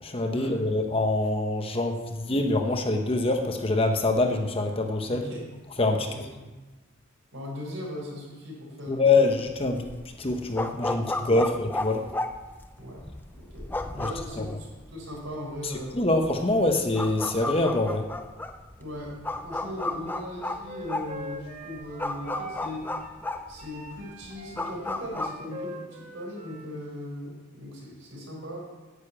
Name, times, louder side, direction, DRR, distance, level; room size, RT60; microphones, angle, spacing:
voice 1, 0.0-5.2 5.8-6.1 8.9-9.8 10.2-12.0 14.4-14.5 16.0-18.1, left 2 dB, 25° left, 4 dB, 0.8 m, -25 dB
voice 2, 5.1-5.5 6.0-6.1 6.3-6.5 7.3-9.3 10.8-11.2 12.8-13.0 13.3-15.9 18.8-22.9 23.5-28.6, left 1 dB, 65° right, -2 dB, 4.3 m, -39 dB
sound 1, 9.5-25.3, left 2 dB, 10° left, 0.4 m, -34 dB
Wind instrument woodwind instrument, 20.4-23.2 23.6-26.7, right 1 dB, 35° right, 1.3 m, -43 dB
10.0 x 6.7 x 8.4 m, 1.2 s
head